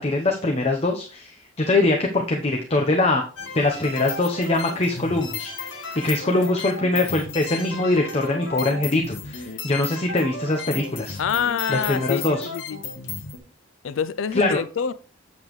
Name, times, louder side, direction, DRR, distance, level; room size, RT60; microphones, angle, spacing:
voice 1, 0.0-3.2 3.5-11.2 11.7-12.5 14.3-14.6, left 2 dB, 30° left, 0.8 m, -23 dB
sound 1, 3.4-13.4, left 4 dB, 70° left, 1.2 m, -34 dB
voice 2, 11.2-12.8 13.8-14.9, left 7 dB, 85° left, 0.4 m, -26 dB
8.0 x 7.0 x 3.1 m
head